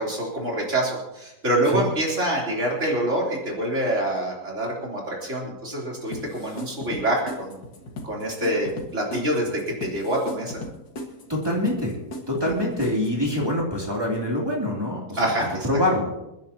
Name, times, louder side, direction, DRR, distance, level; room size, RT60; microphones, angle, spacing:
voice 1, 0.0-7.6 8.0-10.6 15.2-15.7, right 1 dB, 40° right, -3 dB, 4.0 m, -26 dB
sound 1, 6.1-13.5, left 1 dB, 85° left, 2.5 m, -38 dB
voice 2, 11.3-12.0 12.3-15.2 15.6-16.3, left 1 dB, 15° right, -3 dB, 2.9 m, -25 dB
29.0 x 10.0 x 2.9 m, 0.93 s
omnidirectional pair, 1.9 m